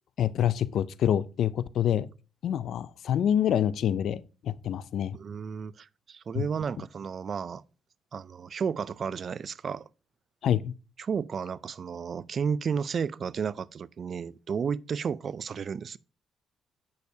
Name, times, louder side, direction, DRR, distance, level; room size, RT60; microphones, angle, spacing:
voice 1, 0.2-2.1 2.4-5.2 6.4-6.5 10.4-10.7, left 10 dB, 70° left, 0.4 m, -26 dB
voice 2, 5.1-7.6 8.1-9.8 11.0-16.0, right 6 dB, 50° right, 0.3 m, -32 dB
8.2 x 6.4 x 2.7 m
cardioid pair, 90°, 0 cm